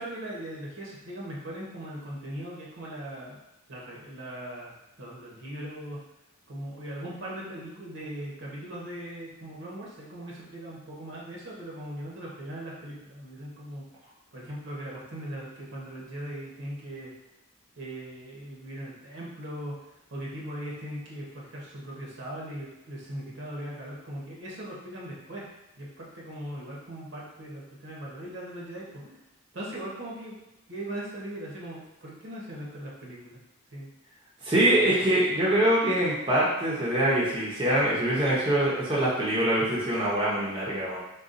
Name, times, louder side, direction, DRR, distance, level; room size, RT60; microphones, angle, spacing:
voice 1, 0.0-3.4 3.7-6.0 6.5-13.9 14.3-17.1 17.8-19.8 20.1-25.5 25.8-29.0 29.5-30.4 30.7-33.4 33.7-33.9 34.7-34.8, right 1 dB, 60° right, -4 dB, 0.8 m, -39 dB
voice 2, 34.4-41.0, right 1 dB, 25° right, -8 dB, 0.6 m, -24 dB
3.9 x 2.3 x 2.4 m, 0.94 s
head